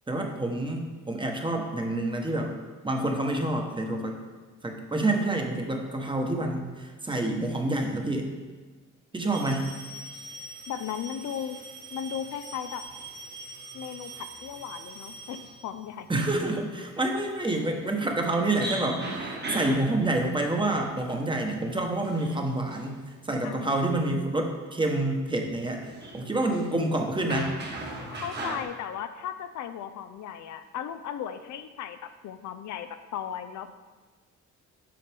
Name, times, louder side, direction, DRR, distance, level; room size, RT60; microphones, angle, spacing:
voice 1, 0.1-2.5 2.8-4.2 4.6-8.3 9.1-9.7 16.1-23.0 23.3-27.5, right 2 dB, 15° right, 2 dB, 1.0 m, -28 dB
Male speech man speaking, 9.3-23.2 25.7-28.6, right 2 dB, 35° right, 1.3 m, -40 dB
voice 2, 10.7-11.6 11.9-12.8 13.7-16.1 23.4-23.9 28.1-33.7, left 9 dB, 70° left, 9 dB, 0.5 m, -36 dB
7.6 x 5.7 x 3.5 m, 1.4 s
cardioid pair, 90°, 30 cm